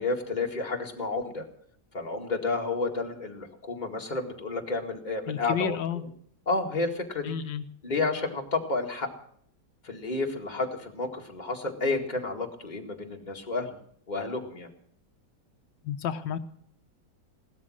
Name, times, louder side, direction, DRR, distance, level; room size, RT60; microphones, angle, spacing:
voice 1, 0.0-1.5 1.9-5.8 6.5-7.3 7.8-9.1 9.8-13.8 14.1-14.7, left 3 dB, 25° left, 1 dB, 2.2 m, -31 dB
voice 2, 5.3-6.0 7.2-7.6 15.8-16.4, left 8 dB, 80° left, 9 dB, 1.5 m, -31 dB
17.0 x 13.0 x 6.3 m, 0.64 s
omnidirectional pair, 1.9 m